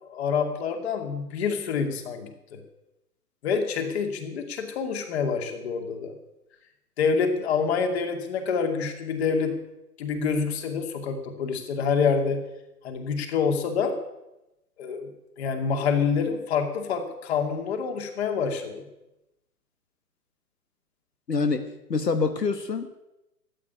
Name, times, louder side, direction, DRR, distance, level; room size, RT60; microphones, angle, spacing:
voice 1, 0.0-2.6 3.4-6.1 7.0-9.6 10.0-12.4 12.8-14.0 14.8-15.1 15.4-18.9, left 5 dB, 40° left, 6 dB, 2.5 m, -27 dB
voice 2, 21.3-21.6 21.9-22.9, left 4 dB, 90° left, 9 dB, 1.4 m, -25 dB
14.5 x 9.0 x 9.7 m, 0.93 s
figure-of-eight pair, 135°, 47 cm